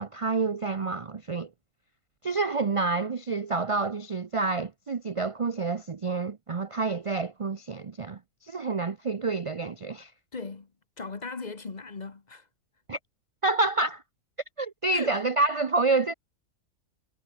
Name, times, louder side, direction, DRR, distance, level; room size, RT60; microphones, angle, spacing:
voice 1, 0.0-1.5 2.2-10.1 12.9-13.0 13.4-14.0 14.6-16.1, right 3 dB, 40° right, 0.4 m, -28 dB
voice 2, 10.3-10.7 11.0-12.5 14.9-15.2, left 4 dB, 30° left, 1.2 m, -38 dB
omnidirectional pair, 1.5 m